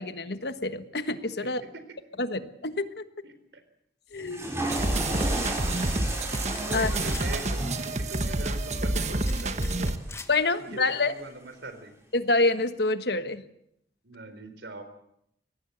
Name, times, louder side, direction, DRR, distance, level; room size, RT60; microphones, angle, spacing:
voice 1, 0.0-1.6 2.2-3.0 4.1-4.5 6.7-6.9 10.3-11.1 12.1-13.4, left 3 dB, 70° left, 10 dB, 1.4 m, -27 dB
voice 2, 1.6-2.0 3.2-3.6 5.1-5.6 6.7-10.0 10.7-11.9 14.0-14.8, right 2 dB, 90° right, 9 dB, 4.1 m, -42 dB
Water / Toilet flush, 4.1-10.4, right 1 dB, 15° right, 5.7 m, -35 dB
sound 1, 4.7-10.0, right 2 dB, 40° right, 1.4 m, -28 dB
sound 2, 6.0-6.1 6.3-6.6 6.9-7.3 9.2-10.3, left 4 dB, 15° left, 1.2 m, -43 dB
24.5 x 18.5 x 8.0 m, 0.76 s
head